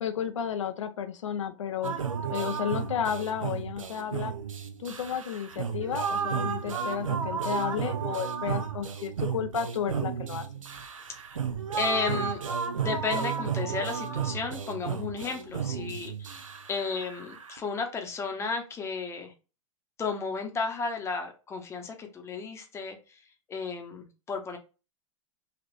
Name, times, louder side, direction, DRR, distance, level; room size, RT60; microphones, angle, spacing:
voice 1, 0.0-1.9 2.3-4.3 4.8-10.4, left 8 dB, 70° left, 9 dB, 0.4 m, -32 dB
sound 1, 1.8-17.6, right 6 dB, 80° right, 0.5 m, -33 dB
voice 2, 11.8-12.4 12.7-19.3 20.0-23.0 23.5-24.6, left 4 dB, 15° left, 4 dB, 0.7 m, -33 dB
3.3 x 2.4 x 2.5 m, 0.31 s
figure-of-eight pair, 100°, 16 cm